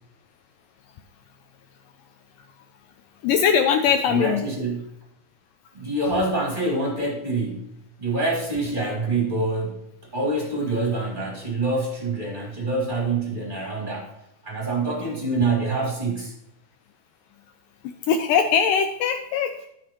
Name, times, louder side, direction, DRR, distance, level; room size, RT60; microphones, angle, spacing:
voice 1, 3.2-4.4 18.1-19.7, left 7 dB, 80° left, 7 dB, 1.9 m, -21 dB
voice 2, 4.1-4.8 5.7-7.7 8.0-9.8 10.1-14.1 14.4-16.3, right 2 dB, 20° right, -2 dB, 1.4 m, -26 dB
15.0 x 5.1 x 3.0 m, 0.79 s
omnidirectional pair, 4.3 m